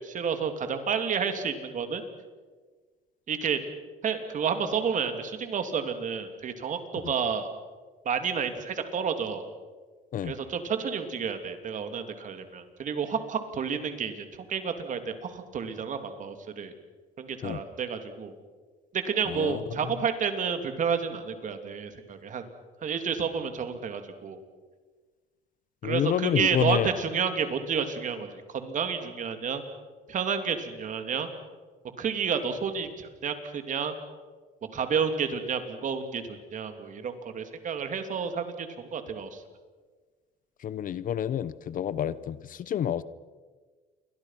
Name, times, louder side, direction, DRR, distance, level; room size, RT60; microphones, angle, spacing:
voice 1, 0.0-2.0 3.3-3.6 4.0-7.5 8.0-9.4 10.2-14.1 14.5-16.7 17.2-18.3 18.9-22.4 22.8-24.4 25.8-29.6 30.1-31.3 32.0-33.9 34.7-36.2 36.5-39.4, right 6 dB, 50° right, 7 dB, 3.1 m, -30 dB
voice 2, 19.3-19.9 25.8-26.9 40.6-43.0, left 9 dB, 55° left, 17 dB, 0.9 m, -29 dB
29.5 x 24.0 x 6.0 m, 1.4 s
cardioid pair, 110°, 17 cm